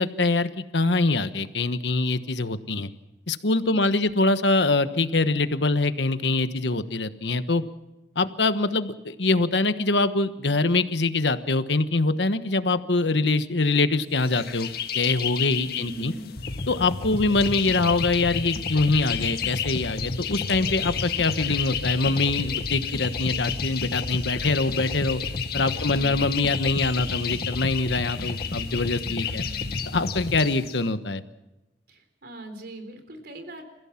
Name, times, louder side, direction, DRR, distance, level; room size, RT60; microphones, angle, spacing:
voice 1, 0.0-2.9 3.3-7.6 8.2-14.7 14.9-16.1 16.7-25.2 25.5-29.4 29.9-31.2, left 3 dB, 75° left, 11 dB, 1.2 m, -24 dB
voice 2, 3.7-4.1 15.4-16.4 17.2-17.4 25.7-26.3 29.2-29.8 31.9-33.6, right 1 dB, 60° right, 7 dB, 4.0 m, -42 dB
sound 1, 14.2-30.8, left 9 dB, 60° left, 1.7 m, -33 dB
sound 2, 16.4-30.4, left 1 dB, 40° left, 1.1 m, -33 dB
30.0 x 16.0 x 5.9 m, 1.0 s
head